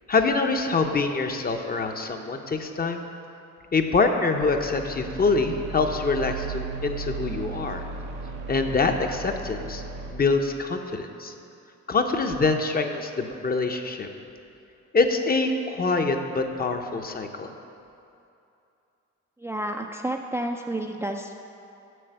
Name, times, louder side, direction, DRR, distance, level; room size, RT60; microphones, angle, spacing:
voice 1, 0.1-3.0 3.7-7.8 8.5-9.8 10.1-11.3 11.9-14.1 14.9-17.5, left 3 dB, 30° left, 5 dB, 0.7 m, -25 dB
sound 1, 4.4-10.1, right 4 dB, 90° right, 1.0 m, -36 dB
voice 2, 19.4-21.3, right 1 dB, 10° right, 2 dB, 0.4 m, -30 dB
7.7 x 5.6 x 6.7 m, 2.7 s
cardioid pair, 90°, 30 cm